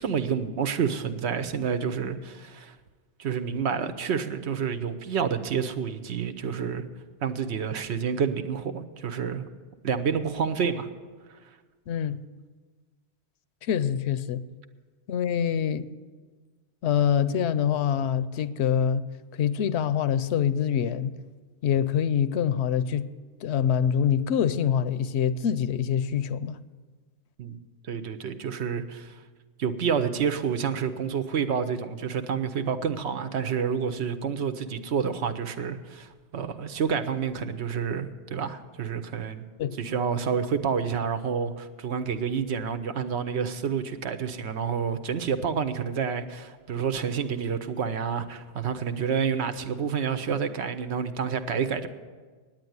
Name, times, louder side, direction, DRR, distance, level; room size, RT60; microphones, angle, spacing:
voice 1, 0.0-2.8 3.2-6.8 7.2-9.5 9.8-10.9 27.4-27.6 27.8-29.2 29.6-39.5 39.8-51.9, right 6 dB, 80° right, 1.0 m, -29 dB
voice 2, 11.9-12.2 13.6-14.4 15.1-15.9 16.8-19.1 19.4-21.2 21.6-23.1 23.4-26.6 39.6-39.8, left 8 dB, 80° left, 0.8 m, -25 dB
9.6 x 9.0 x 9.4 m
omnidirectional pair, 1.1 m